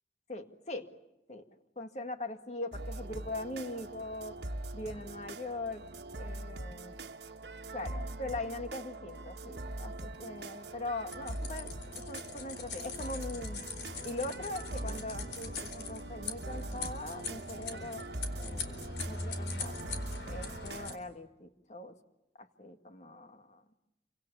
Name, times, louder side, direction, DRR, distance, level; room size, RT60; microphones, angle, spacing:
voice 1, 0.3-0.9 1.3-1.4 1.8-4.4 4.7-5.8 6.2-7.0 7.7-11.7 12.1-13.7 14.0-18.1 18.4-19.8 20.3-21.9 22.4-23.6, left 2 dB, 40° left, 7 dB, 1.9 m, -41 dB
sound 1, 2.7-21.0, right 2 dB, 70° right, 1.5 m, -42 dB
sound 2, 11.1-20.9, left 3 dB, 75° left, 4.1 m, -42 dB
28.5 x 25.0 x 7.1 m, 0.93 s
head